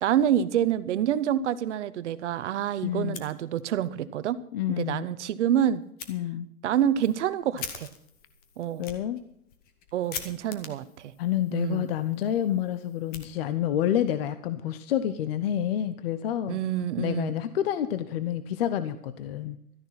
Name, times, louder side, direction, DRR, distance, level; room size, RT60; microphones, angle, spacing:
voice 1, 0.0-4.4 4.7-5.8 6.6-7.9 8.6-8.8 9.9-11.1 11.5-11.9 16.5-17.3, right 10 dB, 50° right, 15 dB, 1.1 m, -27 dB
voice 2, 2.8-3.2 4.5-5.1 6.1-6.5 8.8-9.2 11.2-16.6 17.0-19.6, left 11 dB, 40° left, 12 dB, 0.9 m, -28 dB
Fire, 3.0-3.9 4.2-4.3 4.8-4.9 6.0-6.1 6.7-13.8, left 7 dB, 20° left, 1.4 m, -44 dB
13.0 x 10.5 x 5.8 m, 0.70 s
hypercardioid pair, 140°, 44 cm